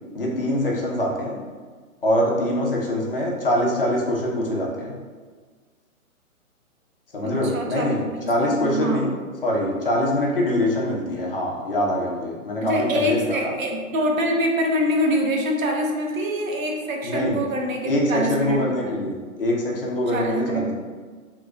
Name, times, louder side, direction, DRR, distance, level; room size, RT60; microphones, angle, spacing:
voice 1, 0.1-1.4 2.0-4.9 7.1-8.0 8.3-9.1 9.4-13.5 17.0-17.4 17.9-20.7, left 1 dB, 40° left, -2 dB, 0.5 m, -24 dB
voice 2, 7.2-9.0 12.6-18.9 20.1-20.7, equal, 70° right, 1 dB, 0.8 m, -25 dB
3.0 x 2.2 x 3.5 m, 1.5 s
hypercardioid pair, 175°, 42 cm